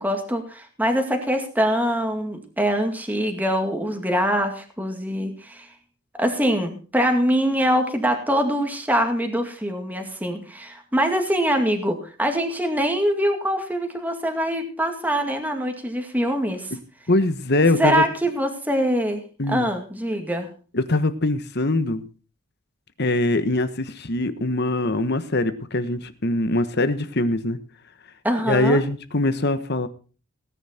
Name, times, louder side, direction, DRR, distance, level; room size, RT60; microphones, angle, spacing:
voice 1, 0.0-5.7 6.2-16.7 17.8-19.2 19.5-20.5 28.2-28.8, equal, 10° right, 4 dB, 2.2 m, -23 dB
voice 2, 17.1-18.0 19.4-19.7 20.7-22.0 23.0-27.6 28.5-29.9, left 2 dB, 50° left, 12 dB, 1.3 m, -22 dB
18.5 x 10.0 x 4.4 m, 0.37 s
head